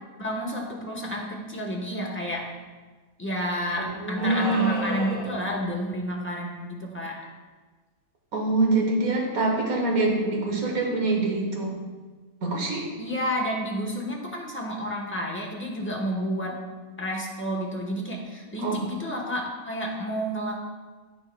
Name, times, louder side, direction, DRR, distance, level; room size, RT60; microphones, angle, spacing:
voice 1, 0.2-2.5 3.2-7.2 13.0-16.6 17.0-20.6, equal, 10° left, -2 dB, 0.7 m, -30 dB
voice 2, 3.8-4.9 8.3-11.7 12.4-12.9 18.6-18.8, right 2 dB, 70° right, -1 dB, 1.7 m, -25 dB
sound 1, 4.2-5.5, right 1 dB, 30° right, 2.4 m, -33 dB
13.0 x 4.5 x 2.2 m, 1.4 s
omnidirectional pair, 1.6 m